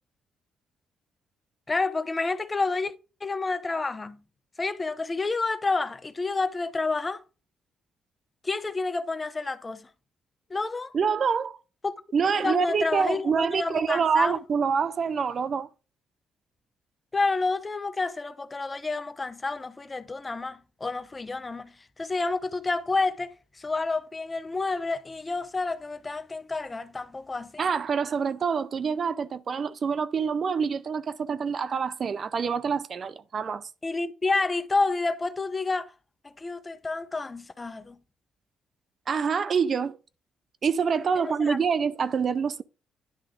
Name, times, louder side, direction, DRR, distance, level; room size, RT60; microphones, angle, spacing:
voice 1, 1.7-2.9 3.2-4.2 4.6-7.2 8.4-9.9 10.5-10.9 11.8-11.9 12.4-14.4 17.1-21.7 22.0-27.6 33.8-35.9 36.2-38.0 41.2-41.6, left 3 dB, 25° left, 0.8 m, -29 dB
voice 2, 10.9-11.6 12.1-15.7 27.6-33.7 39.1-40.0 40.6-42.6, right 6 dB, 50° right, 0.5 m, -26 dB
10.5 x 3.6 x 5.0 m
cardioid pair, 90°, 0 cm